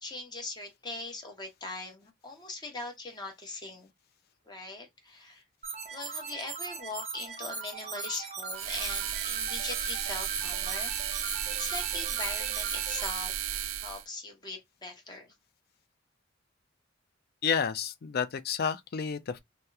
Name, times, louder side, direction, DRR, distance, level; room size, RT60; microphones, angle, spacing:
voice 1, 0.0-3.9 4.5-5.4 5.9-13.3 13.8-15.3, left 3 dB, 20° left, 0.9 m, -41 dB
sound 1, 5.6-13.1, right 4 dB, 35° right, 0.7 m, -39 dB
sound 2, 8.5-14.0, right 10 dB, 80° right, 0.4 m, -34 dB
voice 2, 17.4-19.4, left 6 dB, 50° left, 0.4 m, -30 dB
2.8 x 2.1 x 3.3 m
head